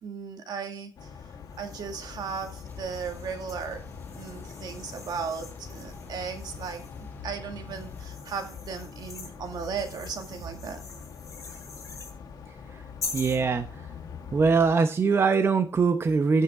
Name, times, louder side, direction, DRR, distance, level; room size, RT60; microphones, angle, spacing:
voice 1, 0.0-1.1 1.6-3.9 4.1-10.8, right 6 dB, 80° right, 5 dB, 1.9 m, -36 dB
sound 1, 1.0-14.7, left 6 dB, 90° left, 1.8 m, -43 dB
sound 2, 1.5-7.1 7.7-12.2 13.0-13.4, left 4 dB, 50° left, 3.3 m, -44 dB
sound 3, 2.6-8.1, left 2 dB, 30° left, 1.5 m, -47 dB
voice 2, 13.1-13.8 14.3-16.4, right 4 dB, 35° right, 7 dB, 0.8 m, -22 dB
14.5 x 5.7 x 3.6 m, 0.35 s
wide cardioid pair, 125°, 7 cm